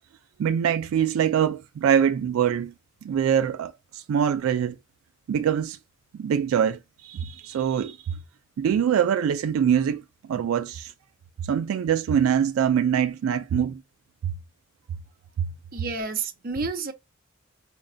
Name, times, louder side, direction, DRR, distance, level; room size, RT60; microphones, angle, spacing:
voice 1, 0.4-2.7 3.0-4.8 5.3-5.8 6.1-8.2 8.6-10.0 10.3-10.9 11.4-13.8 14.2-14.3 15.4-15.5, right 8 dB, 80° right, 0.3 m, -24 dB
voice 2, 15.7-16.9, right 4 dB, 45° right, 0.6 m, -30 dB
5.0 x 2.2 x 2.5 m
head